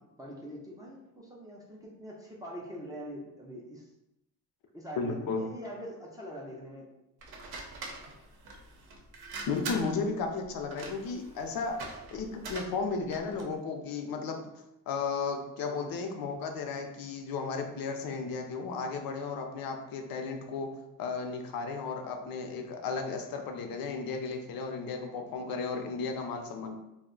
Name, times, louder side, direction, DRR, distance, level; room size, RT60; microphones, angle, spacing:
voice 1, 0.2-3.9 4.7-6.9, equal, 10° right, -4 dB, 0.3 m, -43 dB
voice 2, 5.0-5.4 9.5-11.8 12.1-14.4 14.9-20.7 21.0-26.8, left 4 dB, 70° left, 4 dB, 0.6 m, -34 dB
sound 1, 7.2-13.6, right 3 dB, 85° right, 0.7 m, -43 dB
2.5 x 2.1 x 3.7 m, 0.89 s
cardioid pair, 155°, 36 cm